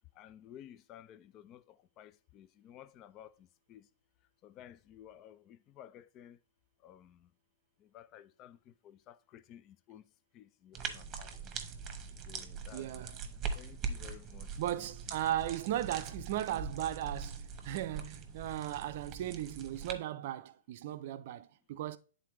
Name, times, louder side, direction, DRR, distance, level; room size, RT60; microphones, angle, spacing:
voice 1, 0.2-1.6 2.0-3.3 3.7-3.8 4.4-6.4 6.8-7.2 7.9-8.6 8.8-10.0 10.3-11.6 12.3-13.1 13.6-14.5 14.7-14.9, left 11 dB, 30° left, 0.4 m, -54 dB
sound 1, 10.7-19.9, right 5 dB, 25° right, 1.1 m, -42 dB
voice 2, 12.7-13.2 14.6-22.0, right 12 dB, 50° right, 0.5 m, -37 dB
10.0 x 4.0 x 3.1 m
hypercardioid pair, 120°, 0 cm